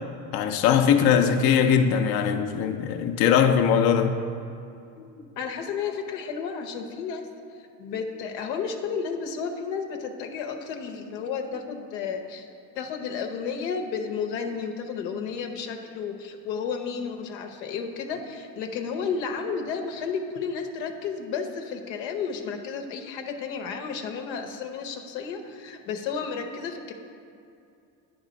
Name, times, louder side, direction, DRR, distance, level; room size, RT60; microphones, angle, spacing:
voice 1, 0.3-4.2, left 7 dB, 50° left, 0.6 m, -21 dB
voice 2, 5.0-7.3 7.8-12.5 12.7-26.9, left 6 dB, 85° left, 0.8 m, -32 dB
8.9 x 3.6 x 5.1 m
hypercardioid pair, 75°, 50 cm